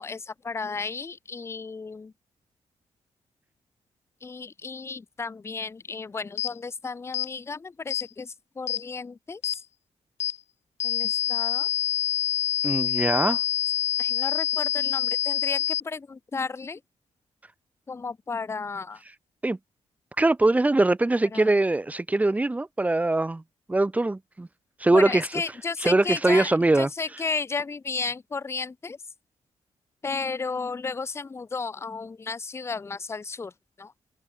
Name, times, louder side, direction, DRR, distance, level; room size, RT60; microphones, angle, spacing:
voice 1, 0.0-2.1 4.2-9.4 10.8-11.7 14.0-16.8 17.9-19.0 21.3-21.5 24.9-26.5 26.8-29.0 30.0-33.5 33.8-33.9, left 4 dB, 20° left, 1.0 m, -33 dB
sound 1, 6.4-6.5 7.1-7.3 7.9-8.1 8.7-8.8 9.4-9.6 10.2-10.4 10.8-15.8, left 10 dB, 65° left, 1.2 m, -26 dB
voice 2, 12.6-13.4 19.4-19.6 20.2-23.4 23.7-24.5 24.8-25.3 25.8-26.9, right 2 dB, 10° right, 1.7 m, -22 dB
wide cardioid pair, 175°, 12 cm